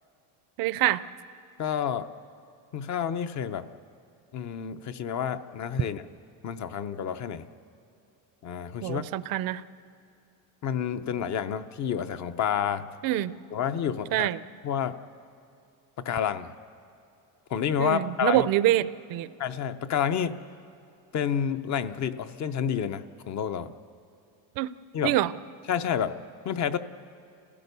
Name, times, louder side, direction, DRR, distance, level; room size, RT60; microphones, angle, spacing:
voice 1, 0.6-1.0 8.8-9.6 13.0-13.3 14.1-14.4 17.8-19.3 24.6-24.7 25.0-25.3, right 14 dB, 50° right, 16 dB, 0.6 m, -25 dB
voice 2, 1.6-2.1 2.7-3.7 4.3-6.0 6.4-7.5 8.4-9.0 10.6-12.9 13.5-14.3 14.6-15.0 16.0-16.5 17.5-18.5 19.4-20.4 21.1-23.7 24.9-25.2 25.7-26.2 26.4-26.8, left 8 dB, 40° left, 11 dB, 0.8 m, -29 dB
29.0 x 16.0 x 6.8 m, 2.6 s
cardioid pair, 140°, 45 cm